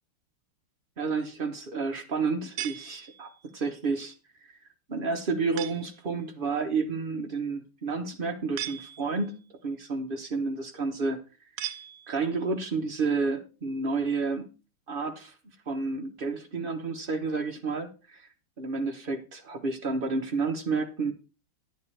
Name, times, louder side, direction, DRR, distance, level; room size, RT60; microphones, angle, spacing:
voice 1, 1.0-4.5 4.9-11.5 12.1-14.5 14.9-15.3 15.7-18.3 18.6-21.1, right 4 dB, 55° right, 3 dB, 0.5 m, -30 dB
sound 1, 2.6-3.5 5.6-6.1 8.6-9.4 11.6-12.5, right 12 dB, 75° right, 1.4 m, -39 dB
10.5 x 10.5 x 3.3 m, 0.32 s
omnidirectional pair, 2.4 m